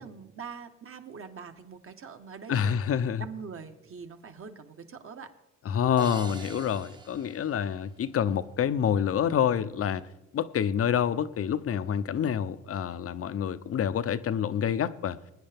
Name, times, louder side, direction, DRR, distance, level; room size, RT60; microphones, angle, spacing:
voice 1, 0.0-2.8 3.2-5.3, right 6 dB, 45° right, 1.4 m, -43 dB
voice 2, 2.5-3.2 5.7-10.1 10.3-15.2, left 8 dB, 50° left, 0.7 m, -27 dB
sound 1, 6.0-8.3, right 3 dB, 15° right, 0.9 m, -44 dB
22.0 x 9.9 x 3.5 m
cardioid pair, 90°, 30 cm